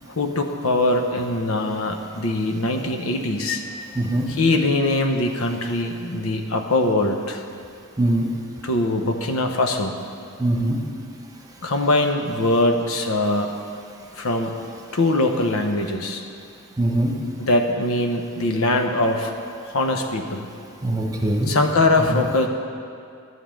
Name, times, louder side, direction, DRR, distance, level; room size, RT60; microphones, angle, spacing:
voice 1, 0.2-3.6 4.3-7.4 8.6-9.9 11.6-13.6 14.2-14.6 14.9-16.2 17.4-19.3 19.7-20.5 21.5-22.5, left 2 dB, 80° left, 4 dB, 0.9 m, -22 dB
voice 2, 3.9-4.3 8.0-8.3 10.4-10.8 16.8-17.1 20.8-21.5 22.1-22.2, right 1 dB, 15° right, -1 dB, 1.1 m, -22 dB
11.0 x 5.3 x 7.5 m, 2.4 s
head